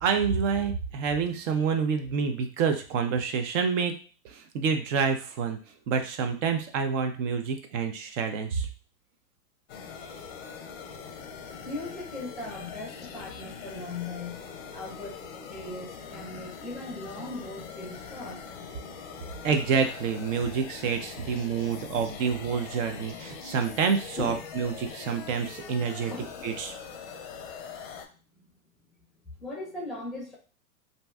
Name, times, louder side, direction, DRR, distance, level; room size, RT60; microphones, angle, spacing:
voice 1, 0.0-3.9 4.3-5.6 5.9-8.7 19.4-26.1 26.4-26.7, right 6 dB, 55° right, 6 dB, 0.6 m, -28 dB
sound 1, 9.7-28.1, left 6 dB, 40° left, 0.5 m, -42 dB
voice 2, 11.6-15.2 15.5-18.7 21.7-21.8 22.9-23.0 24.2-24.4 26.1-26.5 27.0-27.5 28.3-28.4 29.2-30.4, left 2 dB, ahead, -3 dB, 0.6 m, -39 dB
2.6 x 2.2 x 3.3 m, 0.39 s
hypercardioid pair, 135°, 46 cm